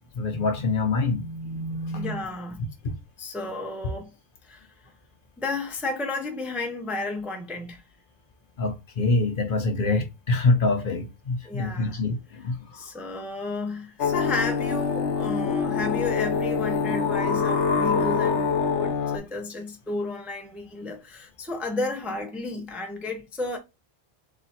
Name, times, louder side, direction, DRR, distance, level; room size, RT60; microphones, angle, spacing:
voice 1, 0.2-2.2 2.8-2.9 8.6-12.6, left 3 dB, 55° left, 0.8 m, -25 dB
voice 2, 1.9-2.6 3.2-4.1 4.4-4.7 5.4-7.8 11.4-12.0 12.7-23.6, left 3 dB, ahead, 0.5 m, -32 dB
sound 1, 14.0-19.2, left 5 dB, 80° left, 1.0 m, -25 dB
3.3 x 2.9 x 4.1 m
omnidirectional pair, 1.2 m